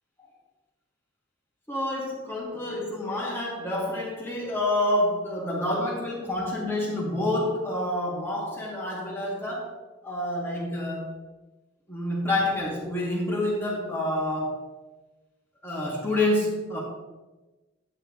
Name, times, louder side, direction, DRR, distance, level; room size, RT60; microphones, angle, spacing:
voice 1, 1.7-9.7 10.0-11.1 11.9-14.6 15.6-16.8, left 1 dB, 15° left, -5 dB, 2.2 m, -28 dB
11.0 x 9.0 x 3.2 m, 1.2 s
head